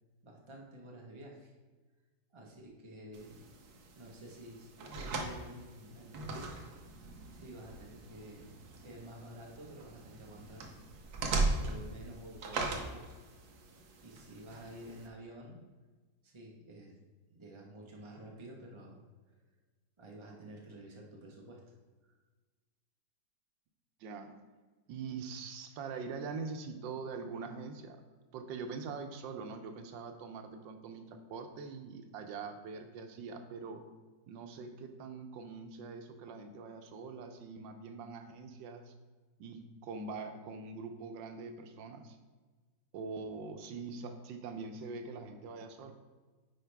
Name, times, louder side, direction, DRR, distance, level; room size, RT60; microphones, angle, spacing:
voice 1, 0.2-1.5 2.3-3.4 4.0-6.7 7.3-8.5 8.7-10.7 11.6-13.2 14.0-15.7 16.2-17.0 17.3-19.0 19.3-19.4 20.0-21.6 22.0-22.1, right 1 dB, 20° right, -1 dB, 0.9 m, -50 dB
sound 1, 3.1-15.1, right 3 dB, 60° right, 1.3 m, -40 dB
voice 2, 24.0-24.3 24.9-28.0 28.3-33.8 34.3-38.9 39.4-42.2 42.9-45.9, right 4 dB, 90° right, 6 dB, 1.4 m, -43 dB
9.4 x 4.7 x 3.4 m, 1.3 s
omnidirectional pair, 2.0 m